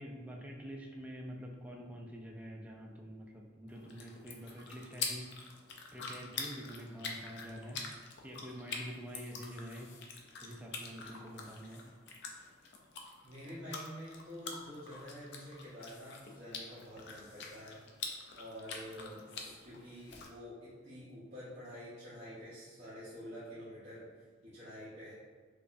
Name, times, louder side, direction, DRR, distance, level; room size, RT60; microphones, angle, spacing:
voice 1, 0.0-5.5 5.9-7.9 8.2-11.9 19.0-19.3, equal, 5° right, -1 dB, 0.3 m, -47 dB
sound 1, 3.7-20.3, left 4 dB, 60° left, 0.5 m, -46 dB
voice 2, 13.2-17.8 18.3-25.1, equal, 35° right, -11 dB, 0.8 m, -48 dB
4.8 x 2.3 x 2.5 m, 1.5 s
head